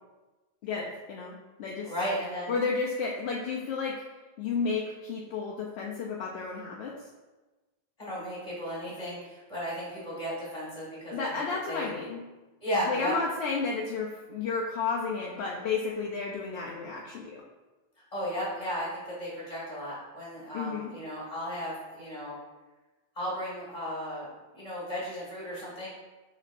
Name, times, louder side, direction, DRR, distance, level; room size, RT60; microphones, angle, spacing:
voice 1, 0.6-1.9 2.5-4.0 4.4-6.9 11.1-12.2 12.9-17.4 20.5-20.9, left 4 dB, 75° left, -2 dB, 0.8 m, -32 dB
voice 2, 1.9-2.5 8.0-11.9 12.6-13.1 18.1-22.4 23.1-25.9, equal, 35° left, -7 dB, 1.6 m, -35 dB
6.1 x 3.3 x 2.5 m, 1.2 s
omnidirectional pair, 1.1 m